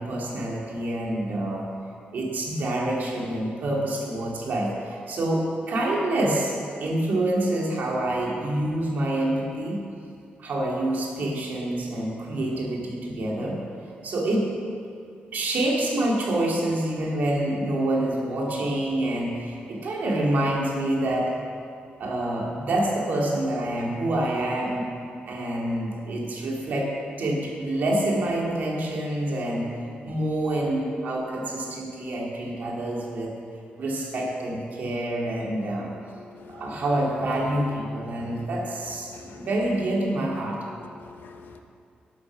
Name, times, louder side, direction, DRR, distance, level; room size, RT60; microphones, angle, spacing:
voice 1, 0.0-1.7 2.1-9.8 10.4-13.6 14.0-14.5 15.3-21.3 22.0-24.8 25.3-26.9 27.2-29.7 30.0-33.3 33.8-35.9 36.5-40.6, right 1 dB, 55° right, -2 dB, 2.4 m, -27 dB
voice 2, 36.2-36.8 38.2-38.5 39.1-39.5 40.8-41.6, left 5 dB, 75° left, 5 dB, 1.0 m, -47 dB
12.5 x 8.4 x 6.2 m, 2.4 s
wide cardioid pair, 175°, 4 cm